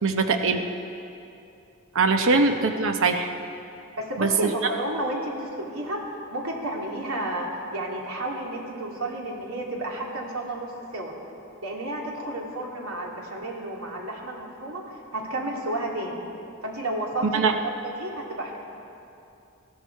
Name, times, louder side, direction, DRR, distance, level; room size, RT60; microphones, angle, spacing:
voice 1, 0.0-0.6 1.9-3.3 4.2-4.5 17.3-17.5, right 4 dB, 65° right, 6 dB, 0.8 m, -22 dB
voice 2, 4.0-6.0 6.3-11.1 11.6-16.2 16.6-17.5 17.8-18.6, right 1 dB, 80° right, -1 dB, 2.7 m, -31 dB
19.5 x 14.5 x 4.6 m, 2.7 s
head